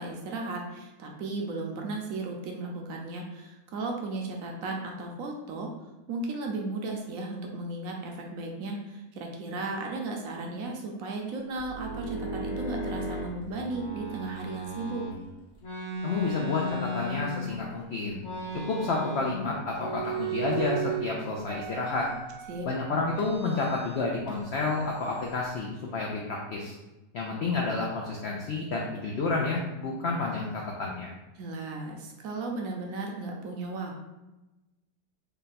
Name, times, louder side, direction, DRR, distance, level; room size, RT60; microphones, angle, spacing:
voice 1, 0.0-5.7 6.1-15.0 22.5-22.7 31.3-34.0, right 2 dB, 70° right, 1 dB, 0.9 m, -35 dB
sound 1, 11.6-15.1 15.6-17.7 18.2-19.5 19.7-21.1 21.4-22.6 23.1-24.0 24.3-25.5, right 2 dB, 50° left, 1.2 m, -36 dB
voice 2, 16.0-18.2 18.7-22.1 22.6-26.7 27.1-31.1, left 3 dB, 90° left, -1 dB, 0.5 m, -30 dB
3.3 x 2.2 x 4.0 m, 1.0 s
omnidirectional pair, 1.7 m